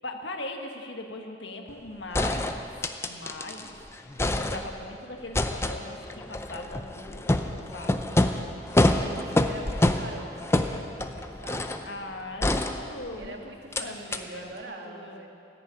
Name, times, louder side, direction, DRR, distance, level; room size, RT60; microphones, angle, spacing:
voice 1, 0.0-2.7 3.0-8.0 9.1-9.4 11.8-13.5 13.8-15.2, left 2 dB, 70° left, 4 dB, 1.6 m, -40 dB
sound 1, 1.7-1.8 2.1-3.7 4.0-4.9 5.3-11.9 12.4-13.3 13.7-13.8 14.1-14.2, left 1 dB, 15° left, 0.5 m, -27 dB
voice 2, 8.9-12.3 13.1-15.3, right 2 dB, 65° right, 2 dB, 1.8 m, -44 dB
14.0 x 10.5 x 8.8 m, 2.6 s
head